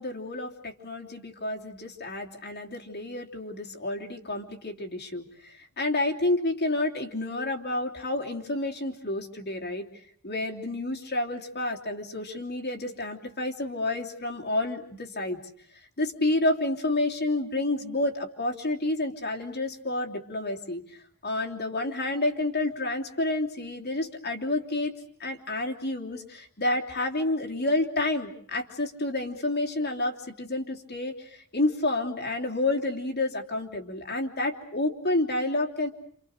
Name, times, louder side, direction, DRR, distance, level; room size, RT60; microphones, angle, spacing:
voice 1, 0.0-9.9 10.2-15.4 16.0-24.9 25.2-35.9, left 2 dB, 50° left, 1 dB, 3.1 m, -29 dB
29.0 x 27.5 x 6.6 m, 0.62 s
head